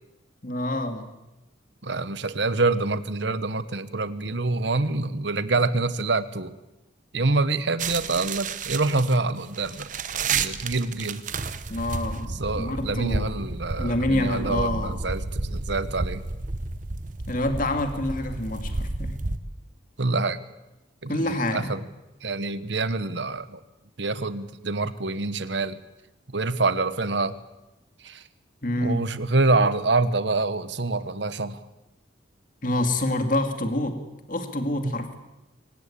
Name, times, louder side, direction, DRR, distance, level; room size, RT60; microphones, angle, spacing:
voice 1, 0.4-1.1 11.7-13.5 13.8-15.0 17.3-19.2 21.1-21.7 28.6-29.1 32.6-34.0 34.3-35.2, left 1 dB, 45° left, 7 dB, 2.3 m, -27 dB
voice 2, 1.8-6.5 7.1-9.9 10.2-11.2 12.4-16.2 20.0-20.4 21.0-21.8 22.2-23.6 24.0-25.8 26.3-27.4 28.0-28.2 28.8-31.6 34.8-35.0, right 3 dB, 65° right, 14 dB, 1.2 m, -26 dB
sound 1, 7.8-19.4, right 4 dB, 40° right, 1.0 m, -31 dB
23.5 x 19.0 x 8.5 m, 0.97 s
head